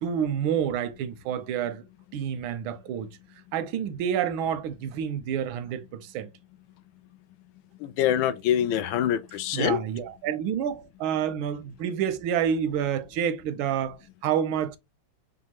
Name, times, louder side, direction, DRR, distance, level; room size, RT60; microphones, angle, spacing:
voice 1, 0.0-1.8 2.1-3.1 3.5-6.3 9.5-14.8, right 8 dB, 85° right, 1.4 m, -28 dB
voice 2, 7.8-9.8, left 10 dB, 75° left, 1.3 m, -25 dB
5.4 x 2.3 x 2.9 m
omnidirectional pair, 2.2 m